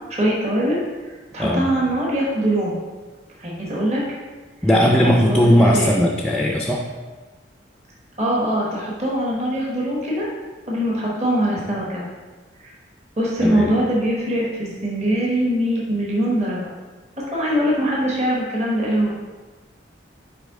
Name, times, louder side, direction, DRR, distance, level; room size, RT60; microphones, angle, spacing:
voice 1, 0.1-0.8 1.3-2.8 3.4-4.0 4.8-5.9 8.2-10.3 10.7-12.0 12.6-12.7 13.2-16.7 17.2-19.1, right 1 dB, 35° right, -4 dB, 1.2 m, -22 dB
voice 2, 4.6-6.8 13.4-13.7, equal, 5° left, 0 dB, 0.4 m, -17 dB
6.5 x 4.6 x 3.7 m, 1.3 s
head